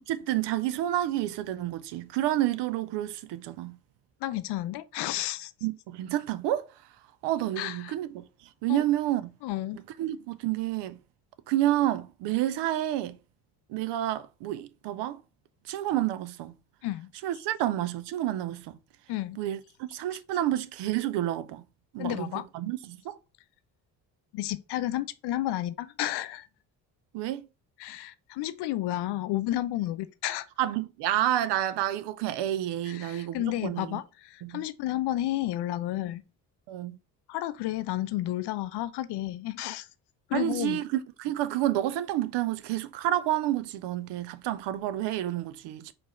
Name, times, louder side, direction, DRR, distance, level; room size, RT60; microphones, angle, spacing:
voice 1, 0.1-3.8 5.6-6.7 7.2-9.3 9.7-11.0 11.5-13.2 13.7-15.2 15.6-16.5 17.2-18.8 19.4-21.6 21.9-23.2 27.1-27.5 30.6-34.0 34.4-34.6 36.7-37.0 40.3-45.9, right 13 dB, 60° right, 0.6 m, -29 dB
voice 2, 4.2-5.5 7.6-7.9 8.7-8.8 9.4-9.8 16.8-17.1 19.1-19.4 22.0-22.4 24.3-26.5 27.8-30.5 32.9-36.2 37.3-39.9 40.3-40.8, left 14 dB, 55° left, 0.6 m, -31 dB
4.6 x 2.5 x 4.3 m
hypercardioid pair, 45°, 49 cm